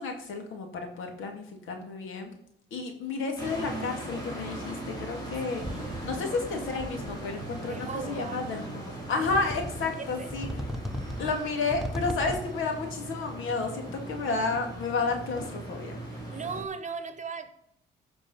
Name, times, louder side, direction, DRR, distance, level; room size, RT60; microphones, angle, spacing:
voice 1, 0.0-2.3 2.7-5.6 6.0-10.5 11.2-16.0, left 4 dB, 80° left, 2.5 m, -31 dB
sound 1, 3.4-16.6, right 1 dB, 20° left, 3.5 m, -39 dB
voice 2, 5.5-6.1 7.7-8.5 10.0-10.3 16.1-17.5, right 5 dB, 35° right, 1.2 m, -38 dB
sound 2, 5.6-6.3 6.6-7.4 8.2-8.3 9.3-10.0 10.3-12.7, equal, ahead, 1.0 m, -37 dB
15.5 x 5.3 x 5.7 m
cardioid pair, 90°, 20 cm